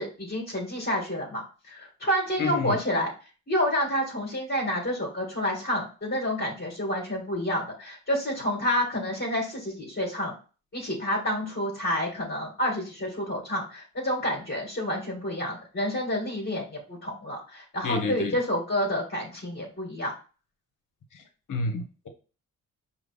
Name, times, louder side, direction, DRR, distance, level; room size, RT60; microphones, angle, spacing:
voice 1, 0.0-3.1 3.5-10.3 10.7-20.1, equal, 35° left, 0 dB, 1.9 m, -29 dB
voice 2, 2.4-2.8 17.8-18.4 21.1-21.2 21.5-22.1, left 3 dB, 55° left, 6 dB, 1.3 m, -29 dB
5.0 x 3.0 x 3.3 m, 0.35 s
hypercardioid pair, 45°, 37 cm